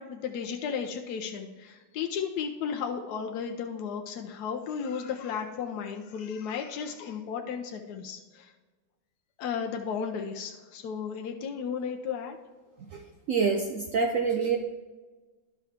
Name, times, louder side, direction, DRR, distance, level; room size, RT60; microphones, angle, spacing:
voice 1, 0.0-8.5 9.4-12.4, left 7 dB, 70° left, 3 dB, 1.0 m, -34 dB
voice 2, 13.3-14.6, right 5 dB, 75° right, 3 dB, 0.7 m, -26 dB
11.0 x 5.6 x 3.5 m, 1.3 s
omnidirectional pair, 2.1 m